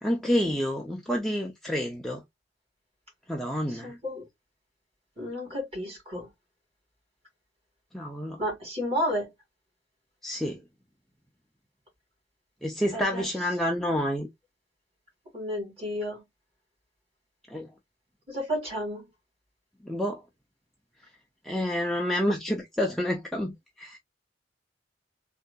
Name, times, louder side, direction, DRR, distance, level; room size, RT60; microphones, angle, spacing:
voice 1, 0.0-2.2 3.3-3.9 7.9-8.4 10.2-10.6 12.6-14.3 17.5-17.7 19.8-20.2 21.4-24.0, equal, ahead, 0.4 m, -28 dB
voice 2, 3.7-4.2 5.2-6.3 8.4-9.3 12.9-13.2 15.3-16.2 18.3-19.0, equal, 35° right, 2.4 m, -32 dB
3.6 x 2.6 x 2.2 m
head